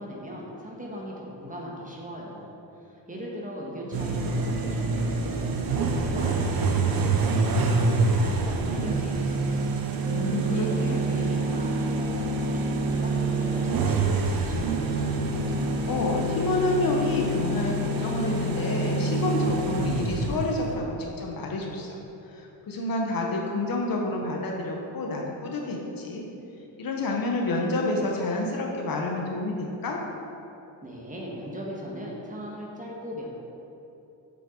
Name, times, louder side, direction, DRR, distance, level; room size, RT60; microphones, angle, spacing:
voice 1, 0.0-5.4 5.7-9.7 10.0-15.1 30.8-33.3, equal, 15° right, -3 dB, 1.5 m, -39 dB
sound 1, 3.9-20.7, right 3 dB, 50° right, 1.0 m, -26 dB
voice 2, 10.1-11.0 15.5-21.9 22.3-26.2 26.8-30.0, left 2 dB, 50° left, 0 dB, 1.2 m, -29 dB
7.6 x 7.3 x 3.9 m, 3.0 s
cardioid pair, 105°, 45 cm